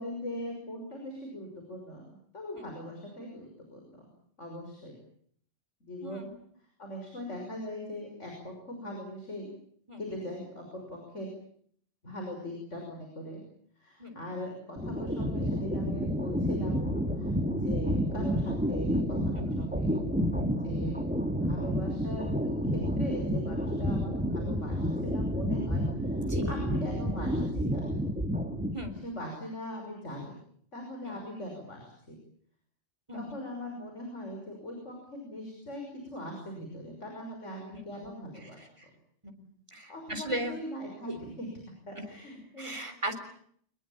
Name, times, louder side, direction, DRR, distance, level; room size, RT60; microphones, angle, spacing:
voice 1, 0.0-3.8 4.4-5.0 5.8-6.3 6.8-9.5 10.0-11.3 12.0-13.4 13.8-17.3 17.6-20.0 20.6-21.0 21.2-22.3 22.6-26.2 26.5-28.0 29.0-30.4 30.7-32.1 33.1-38.6 39.9-41.5 41.9-42.8, equal, 85° left, 2 dB, 6.5 m, -40 dB
voice 2, 6.0-6.4 9.9-10.0 14.0-14.2 19.3-19.6 26.3-26.6 28.7-29.0 31.0-31.2 33.1-33.4 37.7-37.8 39.2-39.5 39.7-40.5 41.1-41.2 42.0-42.1 42.6-43.1, right 1 dB, 25° right, 6 dB, 3.8 m, -37 dB
sound 1, 14.8-29.0, equal, 5° right, 3.0 m, -30 dB
25.5 x 21.5 x 8.8 m, 0.64 s
omnidirectional pair, 1.2 m